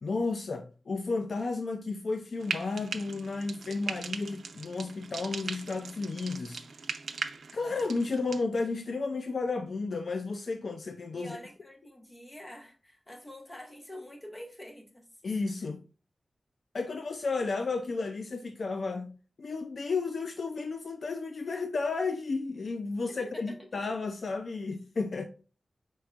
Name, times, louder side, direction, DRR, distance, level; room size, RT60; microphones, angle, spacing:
voice 1, 0.0-6.6 7.5-11.4 15.2-15.8 16.7-25.2, left 3 dB, 60° left, 0.4 m, -33 dB
Frying (food), 2.4-8.4, right 5 dB, 85° right, 0.5 m, -39 dB
voice 2, 11.1-15.1 23.3-23.6, left 1 dB, 20° left, 1.2 m, -46 dB
4.5 x 4.4 x 2.4 m
wide cardioid pair, 115°, 0 cm